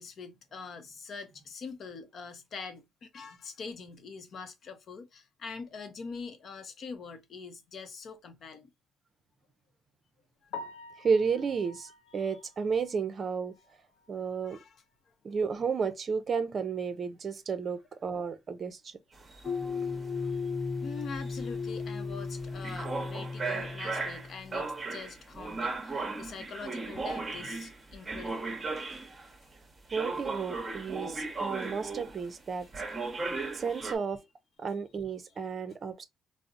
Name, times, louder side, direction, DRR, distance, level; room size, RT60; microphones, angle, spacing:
voice 1, 0.0-8.7 10.4-10.5 12.2-12.3 14.4-14.8 20.8-28.5 29.4-29.5 33.5-33.6 35.7-35.8, left 5 dB, 55° left, 0.7 m, -44 dB
Piano, 10.5-14.5 14.8-15.0 15.5-15.6 15.9-16.0 19.1-19.2 27.7-27.9, left 4 dB, 90° left, 0.4 m, -48 dB
voice 2, 11.0-13.5 14.1-14.6 15.2-19.0 29.9-33.0 33.5-34.2 34.6-36.0, right 5 dB, 45° right, 0.5 m, -32 dB
sound 1, 19.1-29.3 29.9-32.4 32.7-33.9, right 3 dB, 25° right, 0.8 m, -37 dB
sound 2, 19.4-24.7, left 4 dB, 25° left, 1.2 m, -36 dB
3.9 x 2.0 x 2.5 m
cardioid pair, 105°, 0 cm